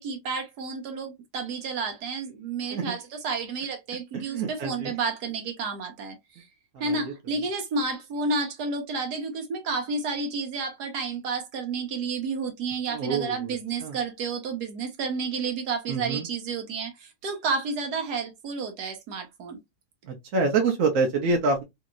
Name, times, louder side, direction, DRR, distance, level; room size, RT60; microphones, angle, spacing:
voice 1, 0.0-6.4 6.8-19.6, right 4 dB, 80° right, 1.3 m, -31 dB
voice 2, 4.1-4.9 6.7-7.1 12.9-14.0 15.9-16.3 20.0-21.6, right 4 dB, 65° right, 1.0 m, -27 dB
2.9 x 2.7 x 2.3 m
omnidirectional pair, 1.7 m